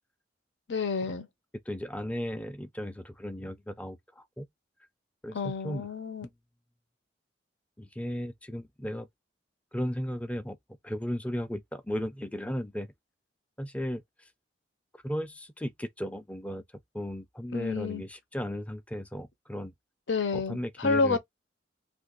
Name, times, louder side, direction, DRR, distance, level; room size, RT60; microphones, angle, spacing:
voice 1, 0.7-1.3 5.3-6.2 17.5-18.0 20.1-21.2, left 4 dB, 85° left, 0.7 m, -29 dB
voice 2, 1.7-4.5 5.2-5.4 5.6-5.9 7.8-9.1 9.7-10.6 10.8-12.9 13.6-14.0 15.0-16.6 16.9-19.7 20.3-21.2, equal, 10° left, 0.4 m, -35 dB
2.5 x 2.5 x 3.8 m
head